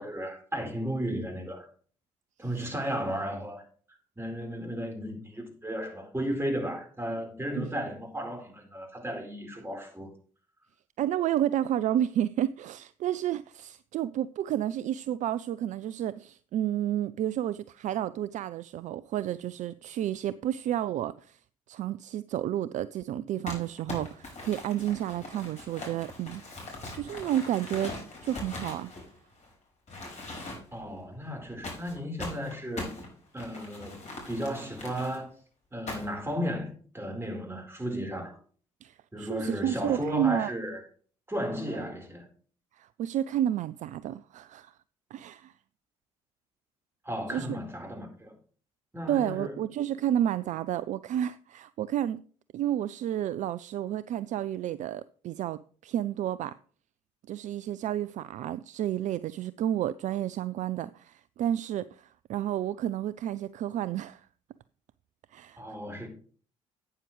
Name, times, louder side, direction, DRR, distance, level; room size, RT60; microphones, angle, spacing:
voice 1, 0.0-1.7 2.4-10.1 30.7-32.9 33.3-35.3 35.7-38.4 39.1-40.8 41.3-42.3 47.0-48.4 48.9-49.6 65.6-66.1, equal, 15° right, 4.1 m, -34 dB
voice 2, 11.0-21.4 21.7-26.4 26.9-28.9 38.8-40.5 42.8-44.7 45.1-45.5 47.3-47.5 49.1-52.2 52.5-56.6 57.3-64.2 65.3-65.6, right 11 dB, 50° right, 0.4 m, -31 dB
Crumpling crinkling, 23.5-29.5 29.9-30.8 31.6-35.2 35.9-36.3, left 2 dB, 45° left, 4.8 m, -41 dB
12.0 x 9.0 x 3.2 m
hypercardioid pair, 50°, 16 cm